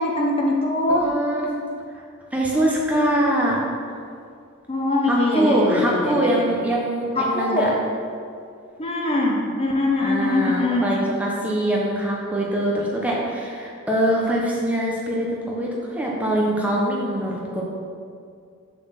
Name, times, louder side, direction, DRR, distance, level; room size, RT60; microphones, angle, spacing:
voice 1, 0.0-1.1 4.7-6.4 7.2-7.7 8.8-10.9, left 2 dB, 25° left, -1 dB, 0.7 m, -22 dB
voice 2, 0.9-1.5 1.9-2.0 2.3-3.6 5.1-7.7 10.0-17.6, right 1 dB, 5° right, -4 dB, 0.8 m, -23 dB
6.8 x 4.1 x 5.7 m, 2.3 s
head